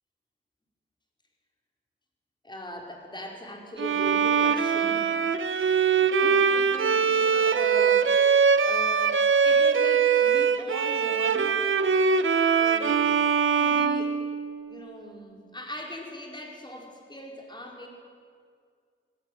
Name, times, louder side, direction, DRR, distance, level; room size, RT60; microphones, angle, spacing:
voice 1, 2.4-5.1 5.6-8.3 8.6-11.6 12.5-13.1 13.6-14.2 14.7-17.9, left 1 dB, 20° left, 1 dB, 4.9 m, -39 dB
Bowed string instrument, 3.8-14.8, right 6 dB, 85° right, 1.1 m, -22 dB
27.0 x 17.5 x 9.4 m, 2.1 s
wide cardioid pair, 110°, 20 cm